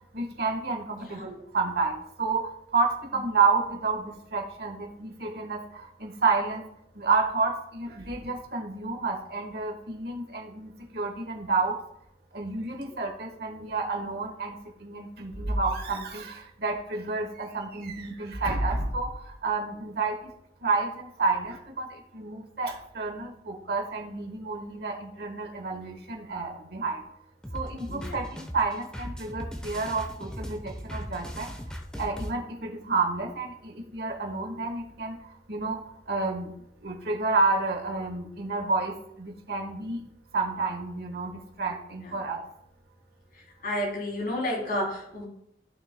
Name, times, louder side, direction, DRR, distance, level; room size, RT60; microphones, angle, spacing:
voice 1, 0.1-6.6 6.9-11.8 12.3-20.2 20.6-21.9 22.1-27.0 27.5-31.5 32.0-35.2 35.5-35.8 36.1-36.5 36.8-40.0 40.3-42.4, right 4 dB, 55° right, 3 dB, 1.4 m, -30 dB
sound 1, 27.4-32.3, equal, 5° left, 0.8 m, -38 dB
voice 2, 27.9-28.2 42.0-42.1 43.6-45.3, left 1 dB, 50° left, -2 dB, 3.2 m, -31 dB
15.0 x 5.9 x 2.2 m, 0.76 s
head